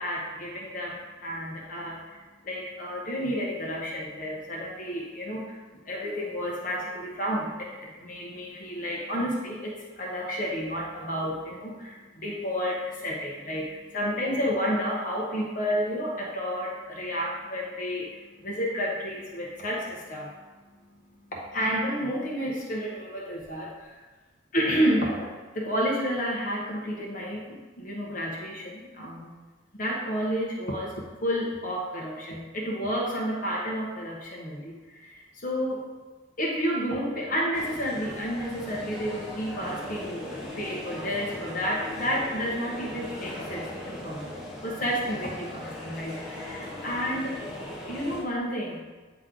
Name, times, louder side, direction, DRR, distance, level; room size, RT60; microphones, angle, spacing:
voice 1, 0.0-20.4 21.3-24.0 24.5-29.3 29.7-35.8 36.4-40.3 40.6-44.3 44.6-47.3 47.9-48.8, equal, 45° left, -3 dB, 1.1 m, -31 dB
sound 1, 37.5-48.2, left 1 dB, 5° right, 1.2 m, -39 dB
8.9 x 3.2 x 3.8 m, 1.3 s
head